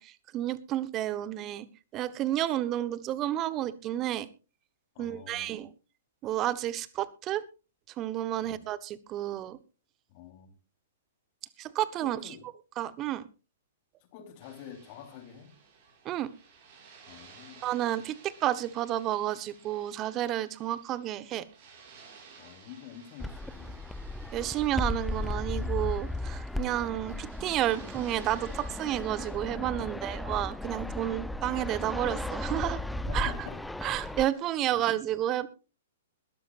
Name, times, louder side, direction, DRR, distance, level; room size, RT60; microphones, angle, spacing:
voice 1, 0.0-1.7 1.9-4.3 5.0-5.7 6.2-7.4 8.0-9.6 11.6-12.3 12.8-13.2 16.0-16.3 17.6-21.5 24.3-32.8 33.1-33.3 33.8-35.5, right 13 dB, 30° right, 17 dB, 1.2 m, -31 dB
voice 2, 4.9-5.5 8.4-8.7 10.1-10.5 12.0-12.4 14.1-15.5 17.1-17.6 22.4-23.8 29.9-30.3 33.1-33.6 33.9-34.0 34.7-34.9, left 9 dB, 40° left, 6 dB, 3.8 m, -47 dB
sound 1, 14.4-29.4, right 5 dB, 45° right, 7.1 m, -55 dB
Fixed-wing aircraft airplane, 23.2-34.2, left 2 dB, 5° left, 0.6 m, -35 dB
21.5 x 13.0 x 2.5 m, 0.32 s
figure-of-eight pair, 110°, 0 cm